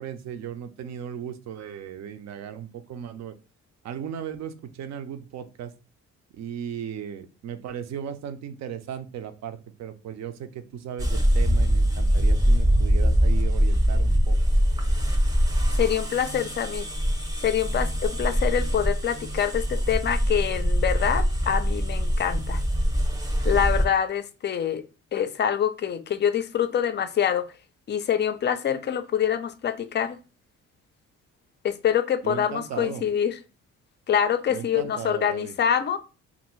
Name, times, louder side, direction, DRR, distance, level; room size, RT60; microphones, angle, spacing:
voice 1, 0.0-3.4 3.8-5.7 6.3-14.4 32.2-33.0 34.5-35.5, right 9 dB, 60° right, 10 dB, 0.5 m, -36 dB
sound 1, 11.0-23.9, equal, 10° right, 0.6 m, -23 dB
voice 2, 15.8-16.9 17.4-22.6 23.4-24.8 25.1-27.4 27.9-30.2 31.6-33.3 34.1-36.0, left 9 dB, 35° left, 11 dB, 0.4 m, -25 dB
2.6 x 2.5 x 3.0 m, 0.32 s
cardioid pair, 90°, 30 cm